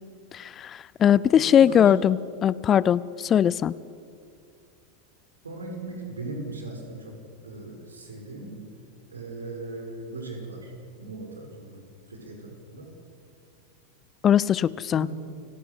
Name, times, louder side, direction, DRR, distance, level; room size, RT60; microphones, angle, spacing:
voice 1, 0.3-3.7 14.2-15.1, left 9 dB, 30° left, 21 dB, 0.5 m, -20 dB
voice 2, 1.3-1.9 5.4-7.2 7.4-8.6 9.1-10.7 11.0-11.8 12.1-12.9 14.9-15.3, right 2 dB, 75° right, 2 dB, 5.6 m, -38 dB
29.5 x 17.5 x 8.2 m, 2.3 s
figure-of-eight pair, 85°, 0 cm